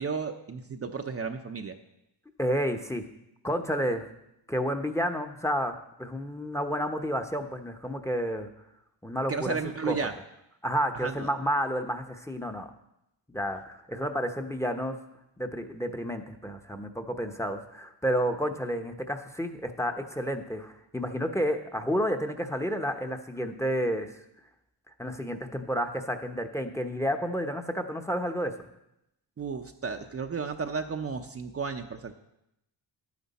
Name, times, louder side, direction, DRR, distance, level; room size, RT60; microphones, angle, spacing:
voice 1, 0.0-1.8 9.3-10.1 10.9-11.3 29.4-32.1, right 5 dB, 35° right, 5 dB, 0.7 m, -33 dB
voice 2, 2.4-3.0 3.4-4.1 4.5-8.5 9.0-9.6 9.8-10.0 10.6-12.7 13.3-15.0 15.4-24.1 25.0-28.5, equal, 5° left, 7 dB, 0.9 m, -30 dB
10.5 x 9.5 x 4.2 m, 0.83 s
cardioid pair, 75°, 44 cm